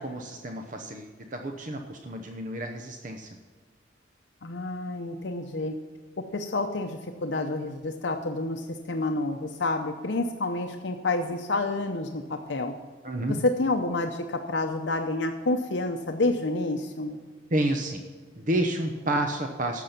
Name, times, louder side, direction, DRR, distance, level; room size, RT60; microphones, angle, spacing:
voice 1, 0.0-3.4 13.0-13.4 17.5-18.0 18.4-19.8, right 1 dB, 45° right, 4 dB, 0.8 m, -30 dB
voice 2, 4.4-5.8 6.3-12.7 13.4-17.2, left 2 dB, 75° left, 5 dB, 0.8 m, -29 dB
12.0 x 7.5 x 5.8 m, 1.5 s
head